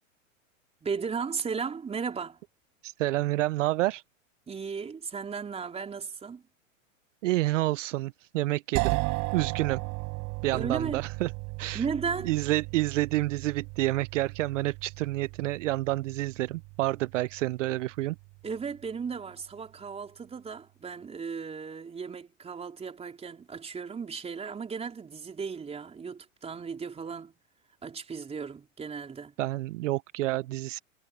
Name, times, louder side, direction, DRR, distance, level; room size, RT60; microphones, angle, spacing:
voice 1, 0.8-2.4 4.5-6.5 10.5-11.1 11.7-12.3 18.4-27.3 27.8-29.3, right 6 dB, 15° right, 4.1 m, -35 dB
voice 2, 2.8-4.0 7.2-9.0 9.3-9.8 10.4-11.3 11.6-11.8 12.3-18.2 29.4-30.8, right 17 dB, 65° right, 0.7 m, -28 dB
sound 1, 8.7-18.5, right 29 dB, 45° right, 4.3 m, -36 dB
hypercardioid pair, 125°, 40 cm